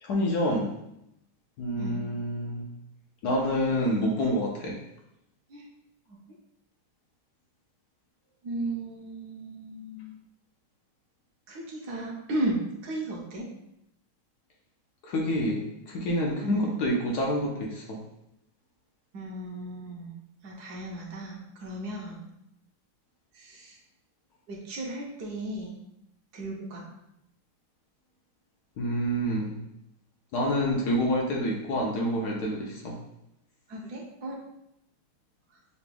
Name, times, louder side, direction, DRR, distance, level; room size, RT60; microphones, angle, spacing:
voice 1, 0.0-0.7 1.6-2.7 3.2-4.8 15.0-18.0 28.8-29.6 30.3-33.0, equal, 65° left, -1 dB, 1.1 m, -27 dB
voice 2, 8.4-10.1 11.5-13.5 16.4-16.7 19.1-20.1 20.4-22.3 23.3-23.8 24.5-25.8 26.3-26.9 33.7-34.4 35.5-35.6, right 1 dB, 65° right, -2 dB, 1.2 m, -35 dB
6.9 x 3.1 x 2.2 m, 0.82 s
omnidirectional pair, 2.1 m